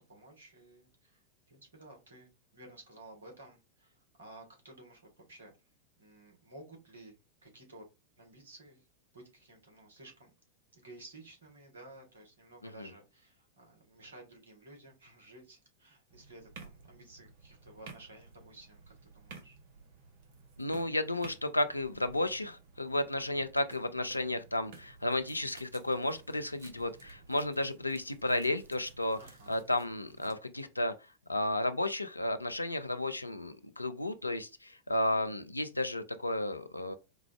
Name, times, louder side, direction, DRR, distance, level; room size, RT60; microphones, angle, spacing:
voice 1, 0.1-5.5 6.0-7.2 7.4-7.8 8.2-8.9 9.1-10.3 10.7-19.6 29.2-29.6, right 2 dB, 65° right, 1.4 m, -54 dB
sound 1, 16.1-30.3, right 4 dB, 50° right, 0.9 m, -55 dB
voice 2, 20.6-29.2 29.5-30.9 31.3-36.9, left 1 dB, 85° left, 0.3 m, -33 dB
4.7 x 2.3 x 2.3 m
figure-of-eight pair, 90°, 0 cm